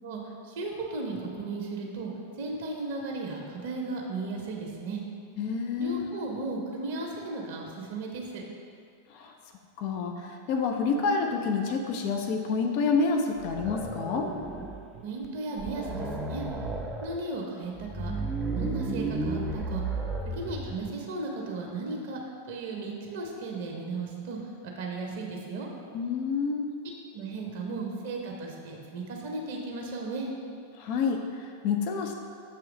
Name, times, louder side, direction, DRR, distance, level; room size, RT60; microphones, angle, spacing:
voice 1, 0.0-2.1 2.4-5.0 5.8-8.4 15.0-16.5 17.0-18.1 18.6-19.8 20.3-22.2 22.5-24.4 24.8-25.7 27.1-30.3, right 3 dB, 55° right, 0 dB, 0.7 m, -35 dB
voice 2, 5.4-6.1 9.1-9.3 9.8-14.3 25.9-26.7 30.8-32.2, left 4 dB, 45° left, 3 dB, 0.5 m, -28 dB
sound 1, 13.4-14.9 15.2-15.3 15.6-17.1 17.8-20.9, right 2 dB, 10° right, 0.5 m, -33 dB
6.9 x 3.1 x 4.8 m, 2.3 s
figure-of-eight pair, 90°, 0 cm